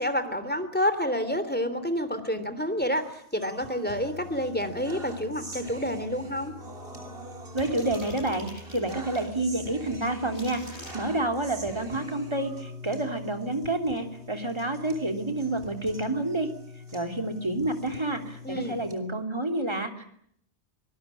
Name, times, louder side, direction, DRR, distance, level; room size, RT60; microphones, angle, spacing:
voice 1, 0.0-6.5 18.4-18.8, equal, 10° left, 11 dB, 3.2 m, -29 dB
sound 1, 2.9-18.9, left 1 dB, 60° right, 3.4 m, -43 dB
voice 2, 7.5-16.5 16.9-20.0, right 2 dB, 25° right, 5 dB, 3.3 m, -29 dB
sound 2, 7.6-9.3 10.0-11.0, left 1 dB, 80° left, 8.3 m, -44 dB
25.0 x 19.5 x 9.9 m, 0.68 s
omnidirectional pair, 1.1 m